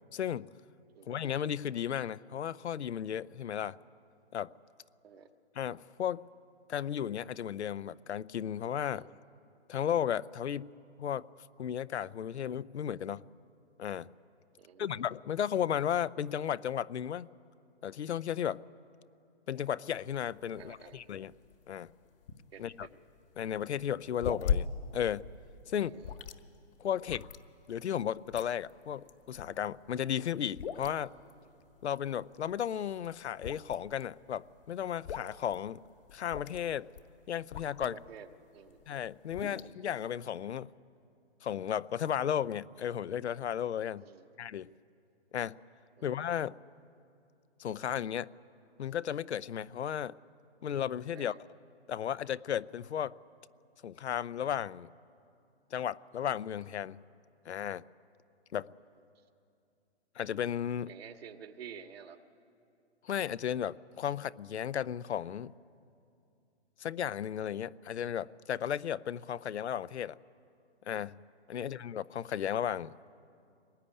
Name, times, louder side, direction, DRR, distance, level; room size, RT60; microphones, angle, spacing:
voice 1, 0.1-0.5 1.1-3.8 4.3-4.5 5.6-6.2 6.7-9.0 9.7-10.7 11.0-11.3 11.6-13.3 13.8-14.1 14.8-17.3 17.8-18.6 19.5-21.3 21.7-21.9 22.6-22.9 23.4-25.3 25.7-26.0 26.8-27.3 27.7-31.1 31.8-35.8 36.1-36.9 37.3-38.0 38.9-40.7 41.4-44.1 44.4-44.7 45.3-45.6 46.0-46.6 47.6-48.3 48.8-50.1 50.6-51.3 51.9-53.2 53.8-54.9 55.7-57.0 57.5-57.8 58.5-58.7 60.2-60.9 63.0-65.5 66.8-70.1 70.9-71.2 71.5-72.9, left 9 dB, 75° left, 16 dB, 0.7 m, -34 dB
voice 2, 14.5-15.0 20.5-21.0 22.5-22.9 25.7-26.2 37.8-38.8 39.4-39.6 44.0-44.4 46.0-46.1 51.1-51.4 60.9-62.2 71.5-71.9, right 7 dB, 60° right, 6 dB, 1.9 m, -51 dB
sound 1, 20.0-38.1 38.6-39.7, left 8 dB, 55° left, 1.5 m, -40 dB
23.5 x 20.0 x 9.8 m, 2.5 s
hypercardioid pair, 155°, 34 cm